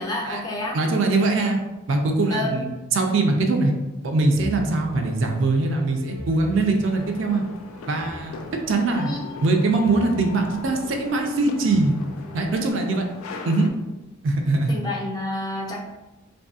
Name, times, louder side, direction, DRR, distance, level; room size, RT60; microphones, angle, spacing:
voice 1, 0.0-0.8 2.3-2.6 9.0-9.2 14.7-15.8, left 1 dB, 20° left, -2 dB, 0.4 m, -29 dB
voice 2, 0.7-1.6 1.9-3.7 4.0-7.4 7.9-9.1 9.4-11.9 12.3-13.0 13.4-13.7 14.2-14.8, right 3 dB, 65° right, 3 dB, 0.4 m, -22 dB
sound 1, 4.0-12.7, left 1 dB, 65° left, 0.8 m, -42 dB
sound 2, 6.8-13.7, left 5 dB, 90° left, 0.3 m, -40 dB
2.6 x 2.6 x 2.3 m, 1.1 s
head